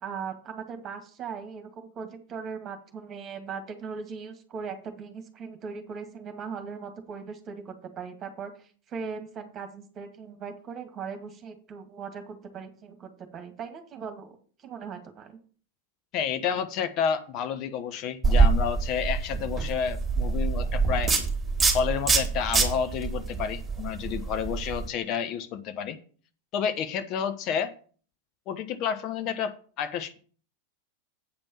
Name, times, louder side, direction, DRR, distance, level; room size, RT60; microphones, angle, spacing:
voice 1, 0.0-15.4, right 6 dB, 30° right, 7 dB, 2.1 m, -39 dB
voice 2, 16.1-21.1 21.7-26.0 26.5-27.7 28.5-30.2, left 7 dB, 40° left, 10 dB, 0.9 m, -30 dB
sound 1, 18.2-24.9, right 4 dB, 15° right, 3.5 m, -25 dB
8.8 x 5.3 x 7.2 m, 0.43 s
figure-of-eight pair, 90°, 0 cm